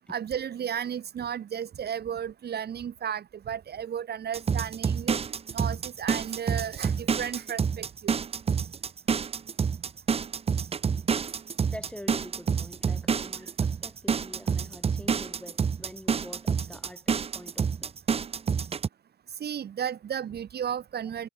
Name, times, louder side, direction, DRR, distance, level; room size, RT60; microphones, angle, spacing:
voice 1, 0.1-5.2 5.5-8.2 19.4-21.3, right 9 dB, 55° right, 1.7 m, -34 dB
sound 1, 4.3-18.9, right 6 dB, 30° right, 0.6 m, -28 dB
voice 2, 11.7-18.0, left 1 dB, 5° left, 2.0 m, -45 dB
cardioid pair, 90°, 20 cm